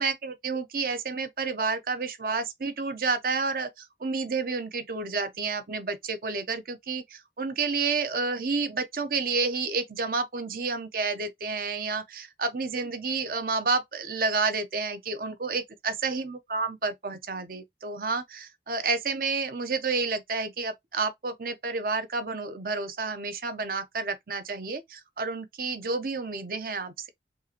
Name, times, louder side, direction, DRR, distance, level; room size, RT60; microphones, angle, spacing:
voice 1, 0.0-27.1, right 4 dB, 50° right, 0.7 m, -30 dB
5.4 x 2.5 x 2.8 m
head